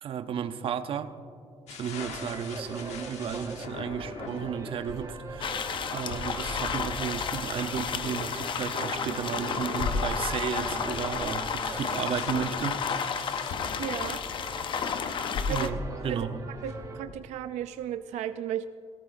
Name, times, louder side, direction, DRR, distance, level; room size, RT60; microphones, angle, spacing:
voice 1, 0.0-1.1 1.7-5.6 5.9-12.8 15.5-15.8 16.0-16.4, right 7 dB, 55° right, 10 dB, 0.7 m, -33 dB
sound 1, 1.7-17.2, left 4 dB, 80° left, 1.0 m, -39 dB
sound 2, 1.9-17.0, right 4 dB, 30° right, 0.9 m, -43 dB
sound 3, 5.4-15.7, left 6 dB, 45° left, 0.6 m, -32 dB
voice 2, 13.8-14.2 15.5-15.7 16.1-16.3 16.6-18.7, right 10 dB, 85° right, 10 dB, 0.4 m, -34 dB
18.0 x 17.5 x 2.6 m, 2.3 s
cardioid pair, 125°, 11 cm